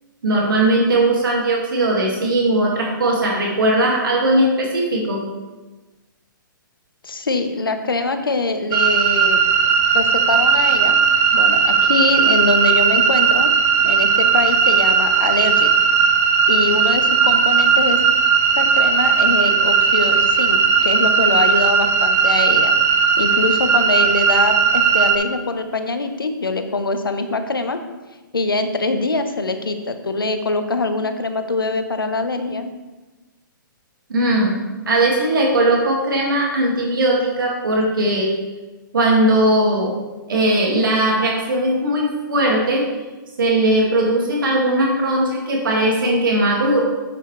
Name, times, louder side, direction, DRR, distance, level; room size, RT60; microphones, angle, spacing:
voice 1, 0.2-5.2 34.1-34.5 34.9-38.3 38.9-39.9 40.3-42.9 43.4-46.8, right 1 dB, 75° right, -2 dB, 2.1 m, -18 dB
voice 2, 7.0-9.4 9.9-11.0 11.3-13.5 13.8-15.7 16.5-18.0 18.6-22.7 23.2-27.8 28.3-32.7, left 3 dB, 90° left, 7 dB, 0.9 m, -23 dB
sound 1, 8.7-25.2, right 6 dB, 25° right, 0.7 m, -16 dB
8.0 x 6.9 x 3.2 m, 1.2 s
hypercardioid pair, 125°, 11 cm